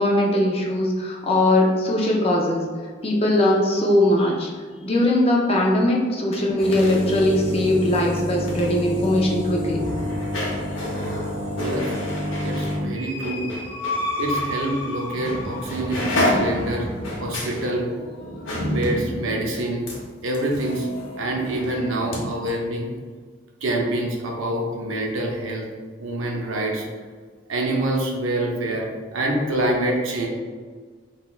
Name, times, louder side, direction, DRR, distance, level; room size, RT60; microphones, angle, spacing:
voice 1, 0.0-2.7 3.0-4.5 4.8-9.9, left 1 dB, 30° left, -2 dB, 0.4 m, -20 dB
sound 1, 6.2-14.0 14.3-14.5 15.2-15.4 15.7-22.2 22.5-22.6, left 1 dB, 75° left, 0.8 m, -28 dB
sound 2, 9.5-17.4, left 1 dB, 45° left, 1.3 m, -33 dB
voice 2, 11.6-11.9 12.4-13.5 14.2-16.9 17.2-17.9 18.6-19.9 20.2-20.9 21.2-22.9 23.6-25.7 26.0-26.9 27.5-30.3, right 1 dB, 85° right, 0 dB, 0.6 m, -26 dB
3.8 x 2.3 x 2.4 m, 1.5 s
head